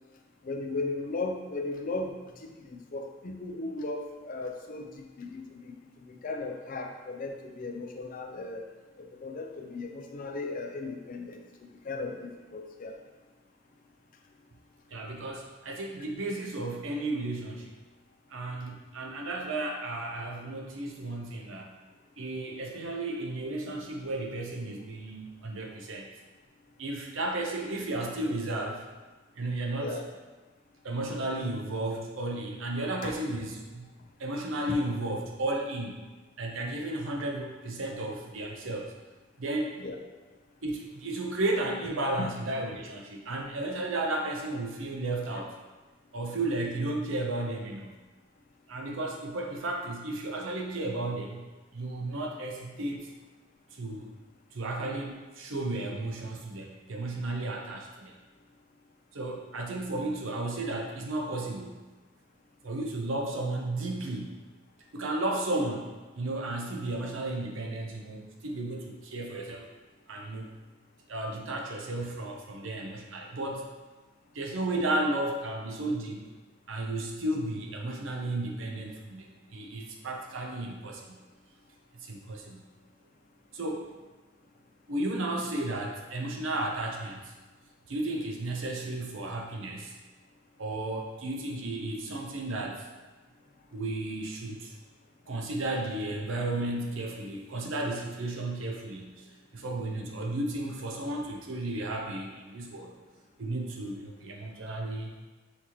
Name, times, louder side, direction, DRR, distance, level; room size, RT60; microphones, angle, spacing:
voice 1, 0.4-2.1 2.6-5.7 6.1-8.6 9.2-11.4 11.8-13.0 29.8-30.0 33.0-33.1 39.8-40.0 42.2-42.3 45.4-45.5, left 3 dB, 45° left, 3 dB, 0.5 m, -36 dB
voice 2, 14.9-17.7 18.3-21.8 22.2-26.1 26.8-28.8 29.3-30.0 30.8-33.9 34.2-36.1 36.4-38.9 39.4-39.8 40.6-45.5 46.1-48.0 48.7-51.5 51.7-53.1 53.7-54.1 54.5-58.1 59.1-61.8 62.6-64.4 64.9-69.7 70.1-70.5 71.1-73.7 74.3-76.2 76.7-81.2 82.0-82.6 83.5-83.9 84.9-87.3 87.9-89.9 90.6-92.9 93.7-94.7 95.3-102.9 103.4-105.1, right 2 dB, 75° right, 1 dB, 0.6 m, -33 dB
5.8 x 2.9 x 3.0 m, 1.3 s
head